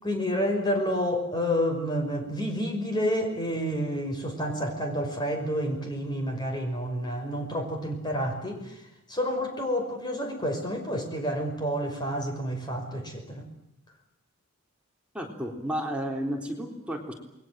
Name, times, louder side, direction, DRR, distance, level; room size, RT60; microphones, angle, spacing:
voice 1, 0.0-8.8 9.1-13.5, equal, 20° left, 4 dB, 5.5 m, -29 dB
voice 2, 15.1-17.1, equal, 5° right, 0 dB, 3.7 m, -32 dB
28.5 x 21.5 x 7.6 m, 0.89 s
head